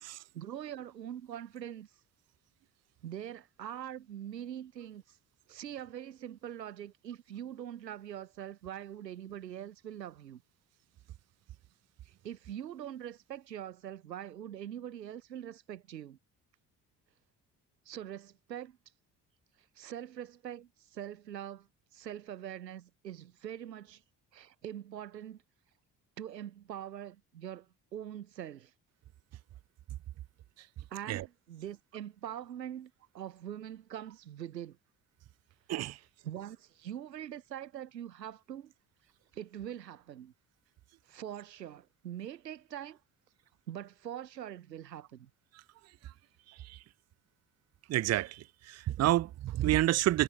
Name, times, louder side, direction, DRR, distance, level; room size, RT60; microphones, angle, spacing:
voice 1, 0.3-1.9 3.0-5.2 5.5-10.4 12.1-16.2 17.9-18.8 19.8-21.7 21.9-24.0 24.3-25.4 26.2-28.7 30.9-34.8 36.2-38.7 39.3-40.3 41.1-43.0 43.7-45.3, right 10 dB, 85° right, 0.8 m, -43 dB
voice 2, 46.5-46.8 47.9-50.2, right 14 dB, 35° right, 0.6 m, -29 dB
figure-of-eight pair, 45°, 49 cm